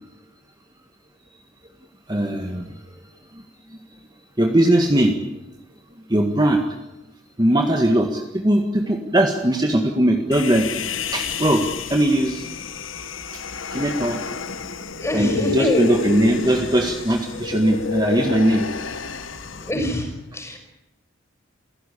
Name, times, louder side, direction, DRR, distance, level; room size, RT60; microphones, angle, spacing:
voice 1, 2.1-2.7 4.4-5.2 6.1-6.7 7.4-10.7 11.1-11.6 11.9-12.5 13.7-14.2 15.1-18.7, right 1 dB, 20° right, 3 dB, 1.8 m, -19 dB
Human voice, 10.3-19.7, left 5 dB, 85° left, 1.4 m, -30 dB
voice 2, 15.0-15.9 19.5-20.6, equal, 15° left, 4 dB, 5.9 m, -25 dB
28.0 x 16.5 x 8.5 m, 0.92 s
head